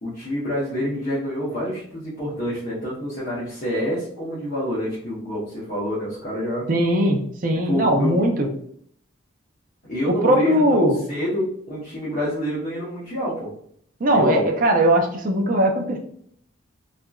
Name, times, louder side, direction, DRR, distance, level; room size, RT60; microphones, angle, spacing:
voice 1, 0.0-6.7 7.6-8.3 9.9-13.5 14.1-14.5, equal, 40° left, -8 dB, 0.8 m, -27 dB
voice 2, 6.7-8.5 10.1-11.0 14.0-16.0, right 1 dB, 40° right, 2 dB, 0.4 m, -19 dB
2.8 x 2.4 x 2.2 m, 0.64 s
head